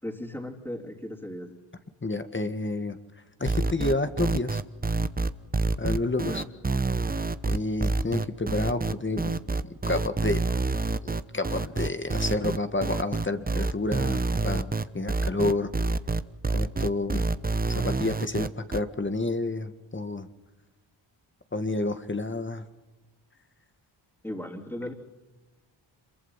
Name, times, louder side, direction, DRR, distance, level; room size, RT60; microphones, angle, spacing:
voice 1, 0.0-1.6 6.2-6.5 24.2-24.9, left 1 dB, 5° left, -3 dB, 3.7 m, -37 dB
voice 2, 2.0-3.0 3.4-4.6 5.8-6.4 7.5-10.4 11.0-15.7 16.5-17.3 17.6-20.3 21.5-22.6, left 2 dB, 25° left, 9 dB, 1.9 m, -30 dB
sound 1, 3.5-18.8, right 3 dB, 20° right, 1.0 m, -27 dB
26.5 x 23.0 x 5.8 m, 1.1 s
cardioid pair, 60°, 47 cm